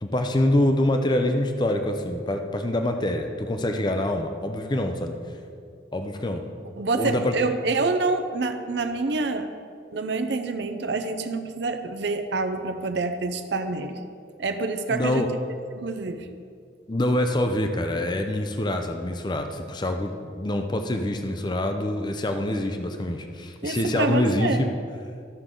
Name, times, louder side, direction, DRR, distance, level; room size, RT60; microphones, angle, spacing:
voice 1, 0.0-5.1 5.9-6.4 6.9-7.3 14.9-15.3 16.9-24.7, left 1 dB, 25° left, 5 dB, 0.5 m, -25 dB
voice 2, 6.8-9.5 9.9-14.0 14.4-15.2 15.8-16.3 23.6-24.7, right 3 dB, 65° right, 7 dB, 0.6 m, -27 dB
13.5 x 6.5 x 3.8 m, 2.3 s
head